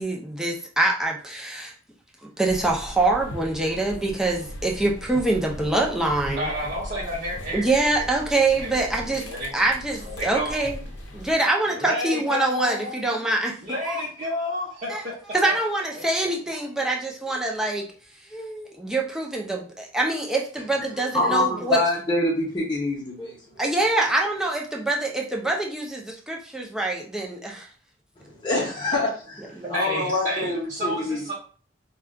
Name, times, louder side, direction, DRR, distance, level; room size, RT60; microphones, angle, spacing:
voice 1, 0.0-1.7 2.2-6.5 7.5-9.2 9.5-10.8 11.1-13.6 13.9-14.0 14.9-15.0 15.3-17.8 18.3-21.8 23.2-23.3 23.6-27.7 29.6-30.0, right 2 dB, 5° right, -1 dB, 0.5 m, -25 dB
sound 1, 2.5-11.3, equal, 75° left, 0.6 m, -39 dB
voice 2, 6.3-7.6 7.9-8.1 8.6-8.8 9.1-9.5 10.0-10.6 11.6-12.9 13.6-15.1 15.5-15.6 29.7-31.3, equal, 40° right, -8 dB, 0.8 m, -30 dB
voice 3, 21.1-23.4 23.8-23.9 28.2-31.3, left 2 dB, 25° left, -6 dB, 0.8 m, -25 dB
2.4 x 2.2 x 3.6 m, 0.41 s
head